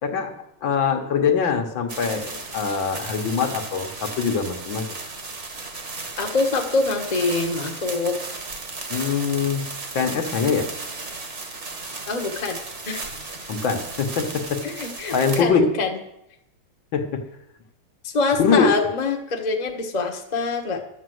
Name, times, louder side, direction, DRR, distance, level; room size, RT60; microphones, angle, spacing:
voice 1, 0.0-0.3 0.6-4.8 8.9-9.7 9.9-10.7 13.5-14.7 15.1-15.7 16.9-17.2 18.4-18.8, left 5 dB, 65° left, 4 dB, 2.0 m, -23 dB
sound 1, 1.9-15.4, right 3 dB, 35° right, 1.6 m, -35 dB
voice 2, 6.2-8.2 12.1-12.6 12.8-13.0 14.6-15.9 18.0-20.8, left 3 dB, 25° left, 2 dB, 1.2 m, -24 dB
12.5 x 7.4 x 7.8 m, 0.81 s
omnidirectional pair, 2.3 m